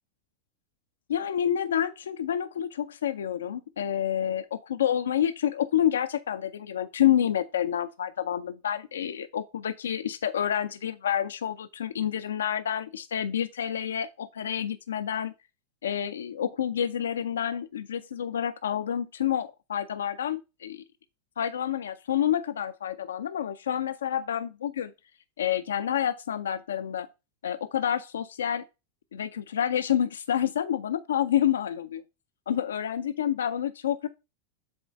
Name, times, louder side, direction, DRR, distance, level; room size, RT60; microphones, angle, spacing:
voice 1, 1.1-15.3 15.8-20.8 21.4-24.9 25.4-27.1 27.4-28.6 29.1-32.0 32.5-34.1, left 10 dB, 80° left, 0.5 m, -28 dB
7.8 x 3.1 x 5.1 m
hypercardioid pair, 95°, 0 cm